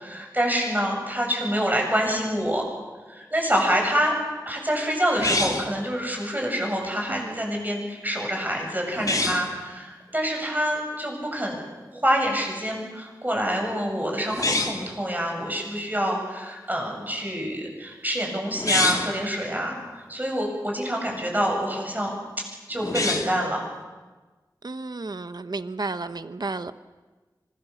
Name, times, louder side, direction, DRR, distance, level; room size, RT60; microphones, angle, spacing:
voice 1, 0.0-2.6 3.1-4.1 4.5-22.1 22.7-23.6, equal, 25° right, 7.8 m, -26 dB
sound 1, 5.2-5.8 8.9-9.5 14.3-14.9 18.5-19.2 22.8-23.4, left 2 dB, 50° left, 2.7 m, -25 dB
voice 2, 7.1-7.4 24.6-26.7, right 3 dB, 60° right, 0.9 m, -32 dB
25.5 x 21.5 x 7.2 m
wide cardioid pair, 65°, 8 cm